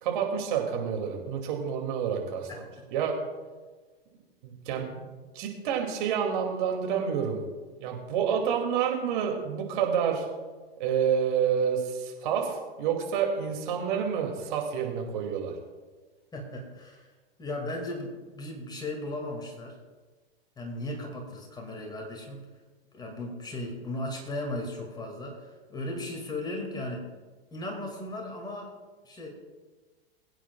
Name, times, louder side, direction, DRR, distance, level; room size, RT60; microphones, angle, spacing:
voice 1, 0.0-2.5 2.9-3.1 4.4-4.9 5.3-7.4 7.8-10.3 10.8-15.5, right 7 dB, 55° right, 2 dB, 2.5 m, -28 dB
voice 2, 2.5-2.8 16.3-17.1 17.4-19.8 20.6-22.5 22.9-27.1 27.5-28.7 29.0-29.3, left 1 dB, 15° left, 1 dB, 2.1 m, -36 dB
21.5 x 9.1 x 2.3 m, 1.3 s
figure-of-eight pair, 105°, 31 cm